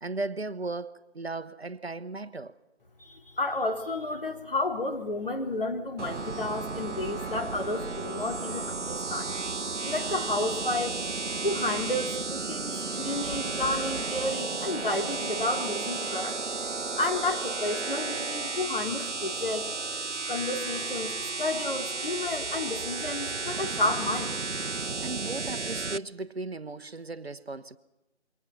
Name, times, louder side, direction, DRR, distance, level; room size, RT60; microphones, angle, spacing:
voice 1, 0.0-2.6 24.8-27.8, right 3 dB, 60° right, 1.1 m, -36 dB
voice 2, 3.0-9.4 9.8-11.0 11.4-16.4 17.0-19.7 20.3-24.3, left 2 dB, 50° left, 3.4 m, -31 dB
sound 1, 6.0-26.0, right 4 dB, 85° right, 0.8 m, -33 dB
27.5 x 23.0 x 5.8 m
figure-of-eight pair, 160°, 35 cm